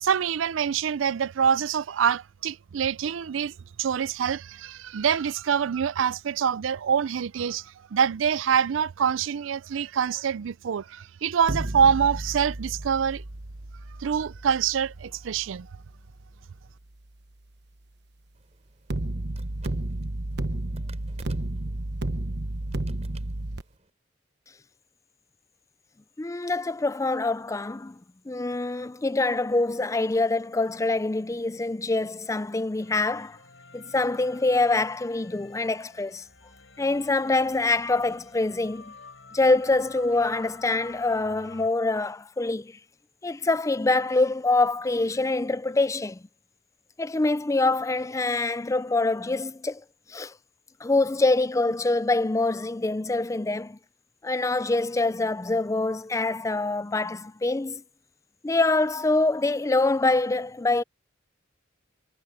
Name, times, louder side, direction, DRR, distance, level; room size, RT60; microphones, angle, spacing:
voice 1, 0.0-3.5 3.8-13.2 14.0-15.7, right 7 dB, 85° right, 0.4 m, -25 dB
sound 1, 11.4-16.5 18.9-23.6, right 1 dB, 60° right, 1.1 m, -32 dB
sound 2, 18.3-23.9, right 4 dB, 35° right, 5.3 m, -57 dB
voice 2, 26.2-28.0 28.3-33.4 33.7-36.2 36.8-38.9 39.3-42.7 43.2-46.2 47.0-49.8 50.1-50.3 50.8-53.8 54.2-57.8 58.4-60.8, left 2 dB, 15° left, 0.4 m, -25 dB
sound 3, 32.8-41.7, left 4 dB, 75° left, 7.9 m, -50 dB
head